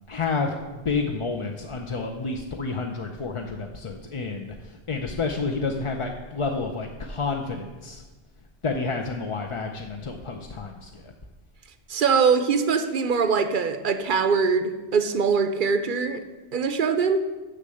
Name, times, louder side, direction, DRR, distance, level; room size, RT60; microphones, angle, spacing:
voice 1, 0.1-8.0 8.6-11.1, left 4 dB, 35° left, 3 dB, 0.5 m, -30 dB
voice 2, 11.9-16.2 16.5-17.3, right 5 dB, 55° right, 9 dB, 0.8 m, -22 dB
6.6 x 6.6 x 7.7 m, 1.2 s
omnidirectional pair, 1.1 m